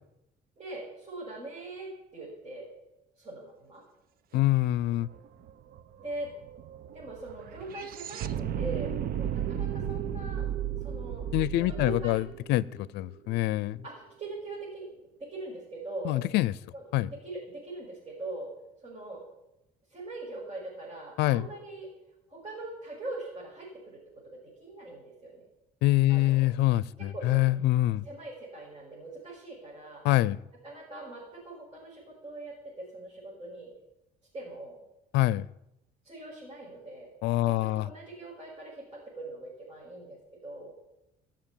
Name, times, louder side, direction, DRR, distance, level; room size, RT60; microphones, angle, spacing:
voice 1, 0.6-2.7 3.2-3.8 6.0-6.3 6.9-10.5 10.8-11.3 11.6-12.2 13.8-14.9 15.2-16.1 16.7-16.8 17.1-18.5 18.8-19.2 19.9-21.9 22.3-24.0 24.3-25.4 26.1-26.5 27.0-27.4 28.0-30.0 30.6-33.7 34.3-34.8 36.0-37.1 37.4-40.7, right 2 dB, 35° right, -5 dB, 6.5 m, -42 dB
voice 2, 4.3-5.1 11.3-13.8 16.0-16.5 16.9-17.1 21.2-21.4 25.8-28.0 30.0-30.4 35.1-35.5 37.2-37.9, left 16 dB, 85° left, 21 dB, 0.5 m, -25 dB
sound 1, 4.8-4.9 5.1-13.4, right 9 dB, 60° right, 0.8 m, -35 dB
19.5 x 7.4 x 8.9 m, 0.90 s
cardioid pair, 110°, 17 cm